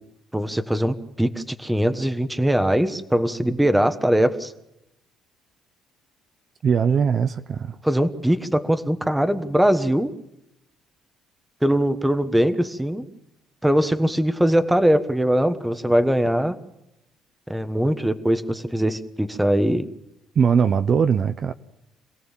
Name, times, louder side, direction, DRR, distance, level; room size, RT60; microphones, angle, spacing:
voice 1, 0.3-4.5 7.8-10.1 11.6-13.0 13.6-16.5 17.5-19.8, equal, 5° right, 1.4 m, -21 dB
voice 2, 6.6-7.8 20.3-21.5, right 6 dB, 40° right, 0.7 m, -20 dB
26.5 x 17.0 x 7.4 m
cardioid pair, 120°, 0 cm